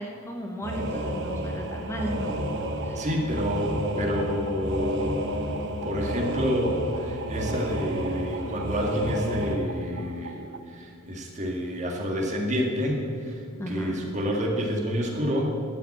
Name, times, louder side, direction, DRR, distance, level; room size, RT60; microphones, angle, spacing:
voice 1, 0.0-2.3 2.8-3.0 13.6-14.0, equal, 15° left, 1 dB, 1.0 m, -35 dB
sound 1, 0.6-9.6, equal, 60° right, 1.1 m, -31 dB
sound 2, 1.6-10.6, right 4 dB, 90° right, 0.8 m, -44 dB
voice 2, 3.0-5.3 5.8-15.6, equal, 35° right, 0 dB, 1.8 m, -29 dB
12.5 x 5.9 x 8.5 m, 2.4 s
head